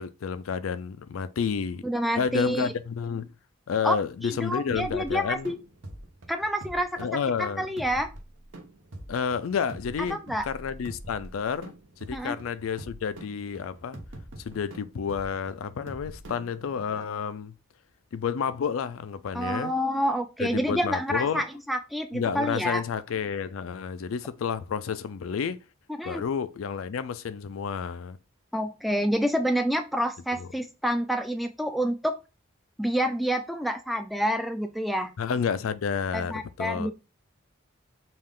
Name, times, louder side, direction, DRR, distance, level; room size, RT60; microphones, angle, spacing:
voice 1, 0.0-1.8 2.2-3.3 3.7-5.5 7.0-7.7 9.1-14.0 14.4-17.5 18.1-19.7 20.4-21.5 22.1-25.6 26.0-28.2 30.3-30.5 35.2-36.3 36.6-36.9, left 6 dB, 85° left, 0.4 m, -30 dB
voice 2, 1.8-2.7 3.8-4.0 4.2-5.6 6.3-7.0 7.4-8.1 10.1-10.5 12.1-12.4 19.3-22.8 26.0-26.2 28.5-32.2 32.8-35.1 36.1-36.9, equal, ahead, 0.3 m, -28 dB
sound 1, 4.7-17.0, right 1 dB, 70° right, 0.8 m, -44 dB
5.3 x 2.4 x 3.6 m
head